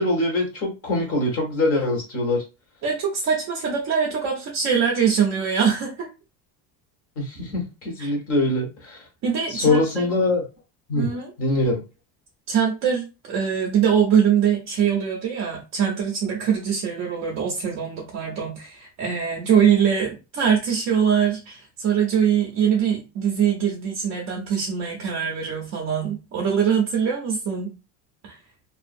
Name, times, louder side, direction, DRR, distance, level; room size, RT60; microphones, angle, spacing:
voice 1, 0.0-2.4 7.2-9.0 9.5-10.4 10.9-11.1 11.4-11.8, left 2 dB, 30° left, 0 dB, 1.1 m, -23 dB
voice 2, 2.8-6.1 8.0-8.1 9.2-10.1 10.9-11.3 12.5-27.7 28.2-28.4, right 7 dB, 40° right, -1 dB, 0.6 m, -23 dB
2.6 x 2.3 x 2.5 m, 0.29 s
cardioid pair, 160°, 44 cm